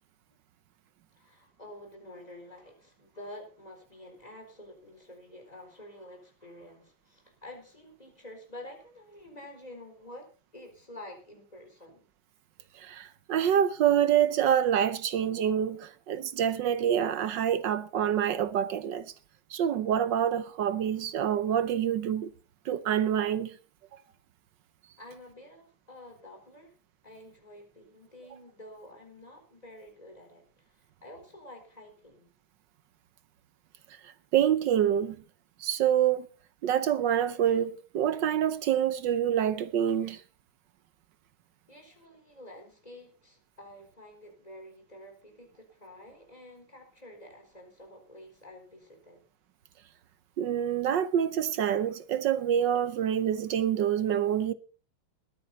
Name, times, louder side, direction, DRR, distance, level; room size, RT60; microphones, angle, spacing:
voice 1, 1.1-10.3 10.5-12.0 25.0-26.7 27.0-32.3 41.7-49.3, left 1 dB, 15° left, 4.3 m, -49 dB
voice 2, 12.7-19.1 19.5-22.3 22.6-23.6 34.0-35.2 35.6-36.3 36.6-40.2 50.4-54.5, right 9 dB, 65° right, 1.3 m, -26 dB
20.5 x 9.4 x 4.1 m
omnidirectional pair, 2.4 m